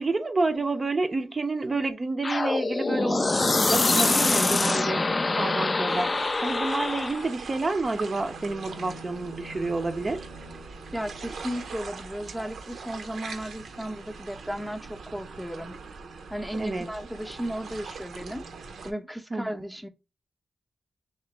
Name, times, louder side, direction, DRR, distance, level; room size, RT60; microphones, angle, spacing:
voice 1, 0.0-5.1 5.4-6.1 6.4-10.3 16.6-16.9 19.3-19.7, right 3 dB, 40° right, 0.5 m, -29 dB
sound 1, 2.2-7.3, left 3 dB, 35° left, 0.4 m, -24 dB
sound 2, 5.9-18.9, right 4 dB, 85° right, 0.7 m, -42 dB
sound 3, 7.0-11.4, equal, 80° left, 0.8 m, -47 dB
voice 2, 10.9-15.8 16.3-18.5 18.8-19.9, equal, ahead, 0.7 m, -35 dB
3.3 x 3.0 x 4.1 m
cardioid pair, 65°, 0 cm